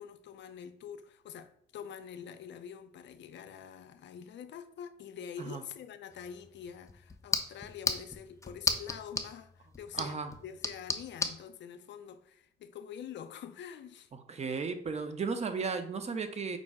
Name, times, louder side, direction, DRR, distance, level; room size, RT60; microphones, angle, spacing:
voice 1, 0.0-14.1, left 8 dB, 65° left, 0.5 m, -46 dB
sound 1, 6.1-11.4, left 3 dB, 15° left, 0.5 m, -36 dB
voice 2, 9.9-10.3 14.3-16.6, right 5 dB, 35° right, 0.6 m, -35 dB
5.2 x 2.1 x 4.7 m
cardioid pair, 90°, 20 cm